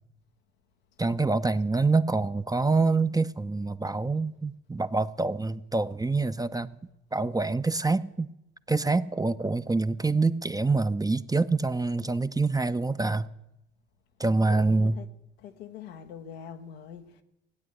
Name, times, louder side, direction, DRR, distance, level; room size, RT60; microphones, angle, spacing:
voice 1, 1.0-6.8 7.1-8.3 8.7-13.3 14.2-14.9, right 3 dB, 10° right, 0.6 m, -26 dB
voice 2, 14.5-15.1 15.4-17.2, left 8 dB, 85° left, 0.9 m, -43 dB
16.5 x 9.3 x 8.0 m
hypercardioid pair, 45°, 30 cm